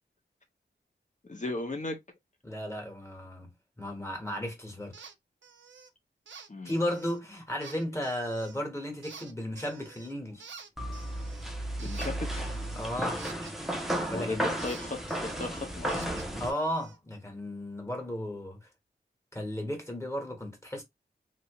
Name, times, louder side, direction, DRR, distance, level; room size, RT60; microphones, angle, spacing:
voice 1, 1.2-2.0 6.5-6.8 11.8-12.3 14.1-16.1, left 2 dB, 40° left, 1.1 m, -36 dB
voice 2, 2.4-3.5 3.8-5.0 6.6-10.5 12.7-13.2 14.1-14.5 16.4-18.7 19.3-20.8, equal, 15° left, 1.4 m, -34 dB
sound 1, 4.9-5.1 5.4-5.9 6.3-7.2 7.6-8.6 9.0-10.1 10.4-14.2 14.6-17.0, right 6 dB, 80° right, 0.6 m, -50 dB
sound 2, 10.8-16.5, right 1 dB, ahead, 0.8 m, -34 dB
2.9 x 2.9 x 3.0 m
wide cardioid pair, 75°, 19 cm